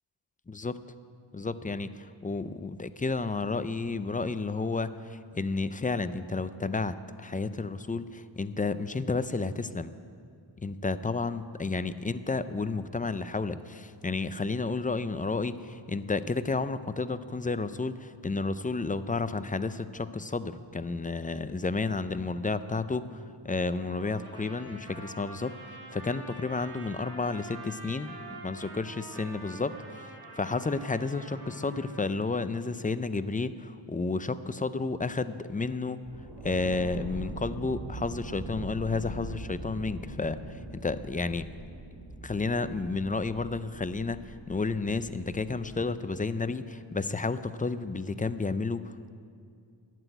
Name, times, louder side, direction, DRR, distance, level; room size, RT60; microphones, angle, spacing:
voice 1, 0.5-0.8 1.3-9.9 10.6-25.5 25.9-29.7 30.3-36.0 36.4-41.5 42.2-49.1, left 3 dB, 20° left, 13 dB, 0.4 m, -31 dB
Trumpet, 23.8-32.1, right 2 dB, 55° right, 4.1 m, -46 dB
sound 1, 36.0-45.8, right 1 dB, 85° right, 2.7 m, -42 dB
12.0 x 8.0 x 9.1 m, 2.3 s
wide cardioid pair, 85°, 46 cm